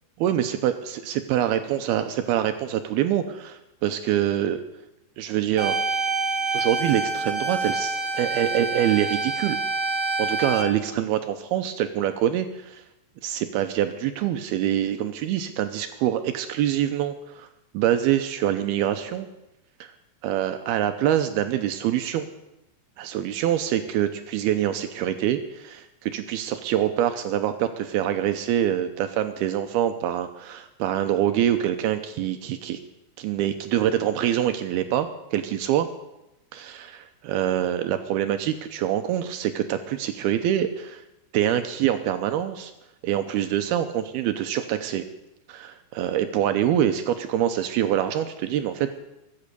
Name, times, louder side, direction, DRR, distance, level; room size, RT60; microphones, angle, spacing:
voice 1, 0.2-4.6 5.2-5.8 6.5-9.6 10.2-12.8 13.2-17.5 17.7-19.3 19.8-19.9 20.2-22.3 23.0-32.8 33.2-35.9 36.5-41.0 41.3-42.7 43.0-45.0 45.5-48.9, right 11 dB, 80° right, 8 dB, 2.3 m, -25 dB
sound 1, 5.6-10.6, right 3 dB, 45° right, 3.0 m, -27 dB
22.5 x 8.8 x 6.8 m, 0.91 s
omnidirectional pair, 5.3 m